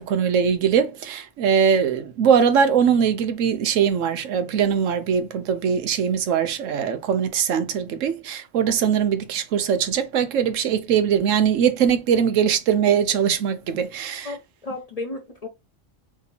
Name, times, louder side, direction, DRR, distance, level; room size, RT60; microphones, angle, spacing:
voice 1, 0.0-14.3, right 7 dB, 85° right, 1.0 m, -21 dB
voice 2, 14.2-15.5, left 2 dB, 35° left, 0.7 m, -33 dB
3.5 x 2.8 x 4.0 m
omnidirectional pair, 1.3 m